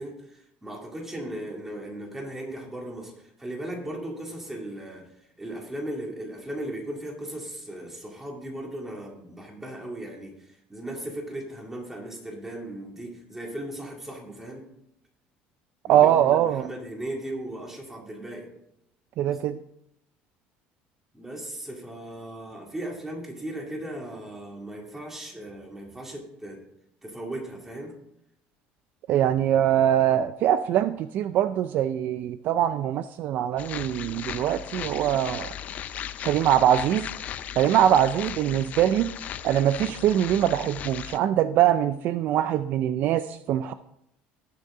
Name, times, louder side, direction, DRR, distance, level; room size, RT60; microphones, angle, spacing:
voice 1, 0.0-5.1 5.4-14.7 15.8-18.5 21.1-26.6 27.0-27.9, right 1 dB, 10° right, 0 dB, 2.2 m, -37 dB
voice 2, 15.9-16.7 19.2-19.6 29.1-35.5 36.2-37.1 37.6-39.1 39.4-43.7, right 11 dB, 50° right, 12 dB, 0.4 m, -23 dB
sound 1, 33.6-41.2, left 10 dB, 40° left, 0.5 m, -37 dB
18.5 x 6.6 x 3.7 m, 0.79 s
cardioid pair, 160°, 4 cm